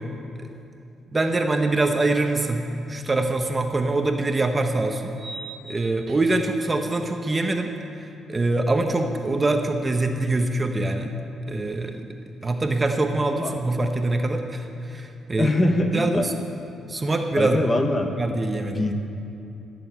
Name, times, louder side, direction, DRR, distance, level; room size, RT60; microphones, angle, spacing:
voice 1, 1.1-5.1 5.7-7.7 8.3-11.1 11.5-12.0 12.4-15.5 15.9-16.3 16.9-17.6 18.2-18.9, right 2 dB, 20° right, 5 dB, 0.8 m, -24 dB
sound 1, 5.1-6.6, right 3 dB, 40° right, 2.0 m, -41 dB
voice 2, 15.4-16.2 17.4-18.1 18.7-18.9, left 1 dB, 25° left, 5 dB, 1.1 m, -22 dB
14.5 x 7.0 x 8.8 m, 2.7 s
cardioid pair, 125°, 0 cm